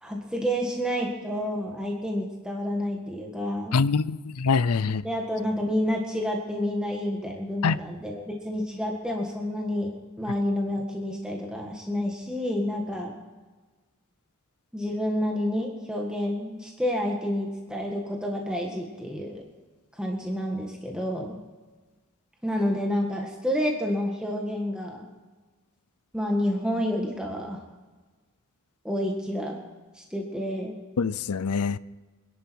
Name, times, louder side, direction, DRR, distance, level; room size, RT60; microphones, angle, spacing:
voice 1, 0.0-3.8 4.8-13.2 14.7-19.5 19.9-21.4 22.4-25.1 26.1-27.6 28.8-29.6 29.9-30.8, equal, 5° right, 1.6 m, -29 dB
voice 2, 3.7-5.0 7.6-7.8 31.0-31.8, left 5 dB, 80° left, 0.5 m, -24 dB
25.5 x 11.0 x 4.6 m
head